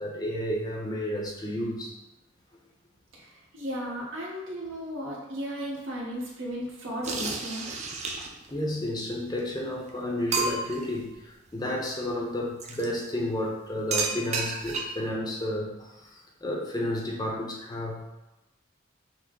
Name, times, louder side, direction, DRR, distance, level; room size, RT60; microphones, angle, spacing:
voice 1, 0.0-1.9 8.5-18.0, left 1 dB, 20° left, -1 dB, 0.6 m, -31 dB
voice 2, 3.1-7.7, equal, 80° right, -4 dB, 1.2 m, -35 dB
sound 1, 7.0-8.5 9.4-9.5 9.9-10.0 10.3-10.9 12.6-12.9 13.9-15.1, right 4 dB, 35° right, 0.5 m, -31 dB
5.8 x 2.0 x 3.8 m, 0.98 s
head